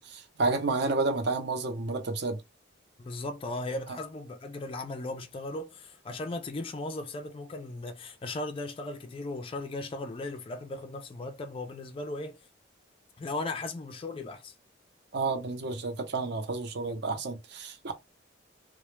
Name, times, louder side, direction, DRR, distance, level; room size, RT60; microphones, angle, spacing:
voice 1, 0.0-2.4 15.1-17.9, right 3 dB, 55° right, 0.5 m, -30 dB
voice 2, 3.0-12.4 13.2-14.5 17.1-17.2, left 2 dB, 30° left, 0.3 m, -37 dB
2.1 x 2.0 x 3.0 m
head